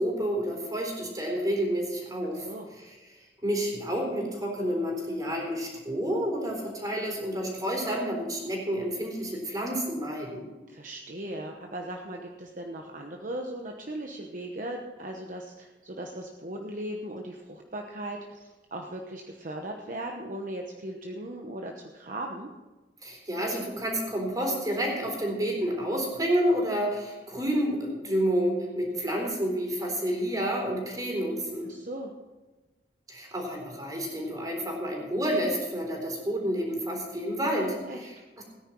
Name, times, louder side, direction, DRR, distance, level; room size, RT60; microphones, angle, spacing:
voice 1, 0.0-2.5 2.8-10.4 23.0-31.7 33.1-38.4, equal, 20° right, 0 dB, 3.9 m, -29 dB
voice 2, 10.7-22.5 31.7-32.1 37.9-38.1, right 1 dB, 50° right, 2 dB, 1.0 m, -38 dB
18.0 x 9.9 x 4.6 m, 1.2 s
head